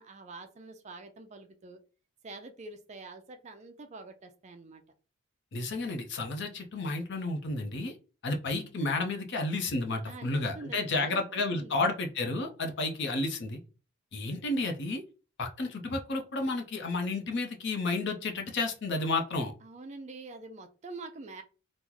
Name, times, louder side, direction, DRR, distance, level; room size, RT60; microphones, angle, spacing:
voice 1, 0.0-1.8 2.2-4.8 10.0-11.8 19.6-21.4, right 3 dB, 35° right, 7 dB, 0.4 m, -46 dB
voice 2, 5.5-7.9 8.2-13.6 14.1-15.0 15.4-19.5, left 2 dB, 55° left, 4 dB, 0.6 m, -31 dB
3.0 x 2.1 x 3.7 m, 0.34 s
head